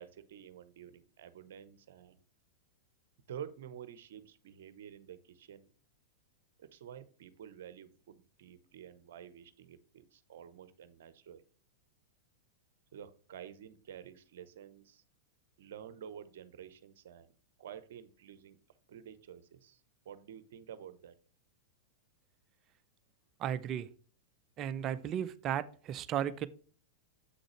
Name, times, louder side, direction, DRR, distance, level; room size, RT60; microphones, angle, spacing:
voice 1, 0.0-2.2 3.3-5.7 6.6-11.4 12.9-15.0 15.6-17.3 17.6-18.6 18.9-21.1, right 9 dB, 60° right, 0.9 m, -50 dB
voice 2, 23.4-23.9 24.6-26.5, right 10 dB, 35° right, 0.6 m, -35 dB
7.9 x 6.3 x 3.2 m
figure-of-eight pair, 95°, 0 cm